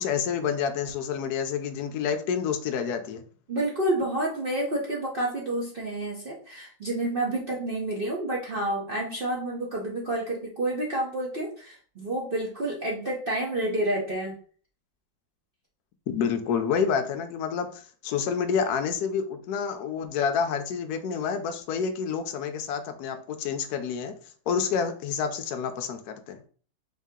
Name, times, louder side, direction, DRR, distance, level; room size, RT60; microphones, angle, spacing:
voice 1, 0.0-3.2 16.1-24.1 24.5-26.4, left 6 dB, 70° left, 7 dB, 0.9 m, -28 dB
voice 2, 3.5-14.4, right 1 dB, 70° right, -3 dB, 0.5 m, -29 dB
4.0 x 2.7 x 3.6 m, 0.43 s
omnidirectional pair, 2.1 m